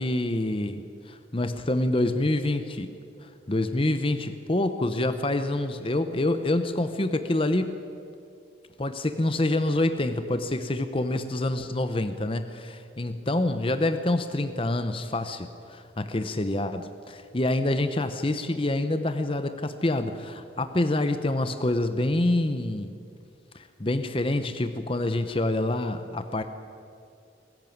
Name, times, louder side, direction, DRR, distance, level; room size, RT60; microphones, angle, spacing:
voice 1, 0.0-2.9 3.2-7.7 8.8-22.9 23.5-26.4, left 1 dB, 30° left, 9 dB, 0.8 m, -27 dB
22.0 x 14.0 x 9.3 m, 2.5 s
head